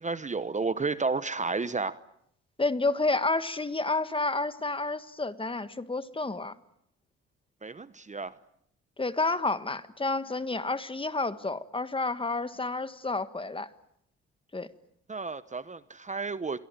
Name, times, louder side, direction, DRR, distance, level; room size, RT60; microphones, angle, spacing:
voice 1, 0.0-2.0 7.6-8.3 15.1-16.6, right 4 dB, 25° right, 1.0 m, -32 dB
voice 2, 2.6-6.5 9.0-13.7 14.5-14.7, left 3 dB, 15° left, 1.6 m, -30 dB
27.0 x 23.0 x 9.1 m
cardioid pair, 90°, 30 cm